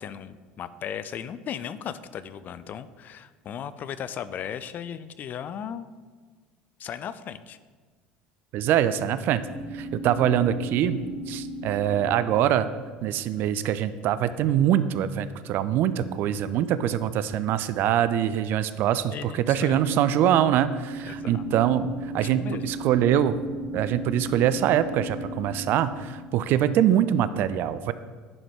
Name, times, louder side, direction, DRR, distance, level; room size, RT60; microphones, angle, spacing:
voice 1, 0.0-5.9 6.8-7.6 19.1-19.9 21.0-21.5 22.2-22.6, left 8 dB, 45° left, 14 dB, 0.4 m, -36 dB
voice 2, 8.5-9.4 9.7-11.0 11.3-12.7 13.0-23.4 23.7-27.9, right 10 dB, 55° right, 14 dB, 0.3 m, -24 dB
sound 1, 9.5-13.6 19.7-26.7, right 1 dB, 5° right, 0.8 m, -37 dB
10.5 x 3.8 x 3.6 m, 1.5 s
hypercardioid pair, 75°, 4 cm